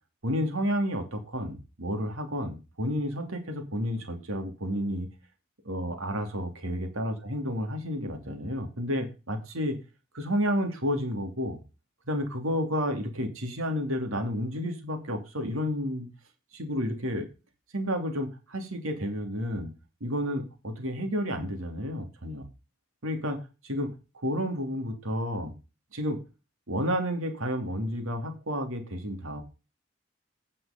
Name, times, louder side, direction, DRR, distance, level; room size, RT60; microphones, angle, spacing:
voice 1, 0.2-5.1 5.6-9.8 10.1-11.6 12.1-16.1 16.5-17.3 17.7-19.7 20.0-22.5 23.0-23.4 23.6-23.9 24.1-25.5 25.9-26.2 26.7-29.4, equal, 85° right, 5 dB, 3.0 m, -31 dB
9.5 x 7.5 x 5.2 m, 0.30 s
head